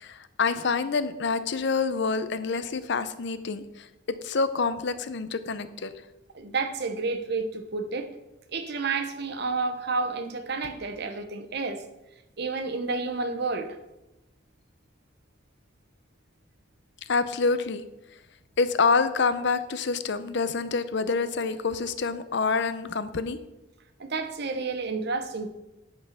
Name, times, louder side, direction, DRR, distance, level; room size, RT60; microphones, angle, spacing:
voice 1, 0.0-5.9 17.1-17.8 18.6-23.4, left 4 dB, 60° left, 0.6 m, -27 dB
voice 2, 6.3-8.1 8.5-11.8 12.4-13.8 24.0-25.5, right 4 dB, 55° right, 0.9 m, -30 dB
9.0 x 5.6 x 5.8 m
head